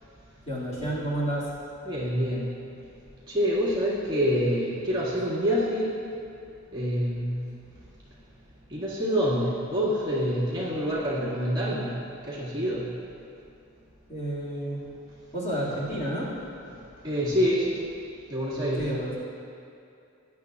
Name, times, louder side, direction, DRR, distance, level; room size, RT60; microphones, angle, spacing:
voice 1, 0.5-1.5 14.1-14.8 15.3-16.3 18.8-19.2, right 1 dB, 30° left, -8 dB, 2.2 m, -30 dB
voice 2, 1.9-2.5 3.3-5.9 6.7-7.4 8.7-11.9 12.2-12.9 17.0-17.9 18.3-18.9, equal, 20° right, -9 dB, 2.0 m, -26 dB
15.5 x 10.5 x 2.4 m, 2.6 s
head